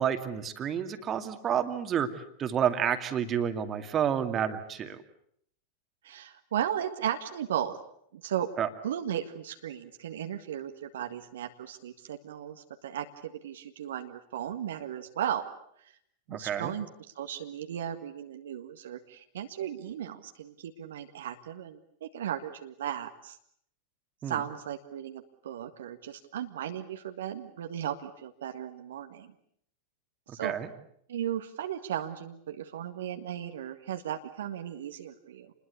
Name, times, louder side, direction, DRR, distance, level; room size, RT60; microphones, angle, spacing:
voice 1, 0.0-2.1 2.4-5.0 8.6-8.7 16.3-16.7 24.2-24.4 30.4-30.7, right 8 dB, 25° right, 8 dB, 2.4 m, -29 dB
voice 2, 6.0-7.8 8.1-8.5 8.8-15.4 15.8-15.9 16.3-16.9 17.1-23.4 24.2-29.3 30.3-30.5 31.1-35.5, right 10 dB, 60° right, 6 dB, 1.7 m, -36 dB
28.5 x 21.0 x 8.3 m, 0.69 s
figure-of-eight pair, 90°, 0 cm